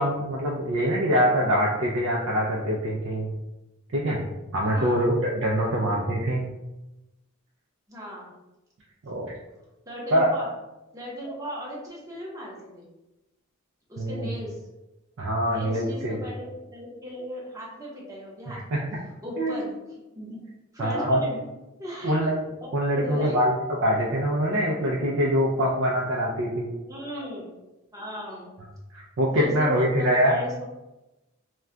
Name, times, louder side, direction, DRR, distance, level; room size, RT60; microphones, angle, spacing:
voice 1, 0.0-3.3 3.9-4.2 4.5-6.5 9.1-9.3 10.1-10.3 14.0-14.3 15.2-16.2 18.5-19.0 19.4-19.6 20.8-21.2 22.0-22.4 22.7-23.5 23.8-26.7 28.9-30.4, equal, 60° right, -3 dB, 0.4 m, -24 dB
voice 2, 4.6-5.1 5.6-5.9 7.9-8.3 9.9-10.5 10.9-12.9 13.9-14.6 15.5-18.8 19.2-19.7 20.2-20.4 20.7-21.4 21.8-22.3 22.6-23.4 26.8-27.5 27.9-28.5 29.3-30.7, left 1 dB, 15° right, -4 dB, 0.7 m, -37 dB
2.2 x 2.2 x 3.6 m, 1.0 s
head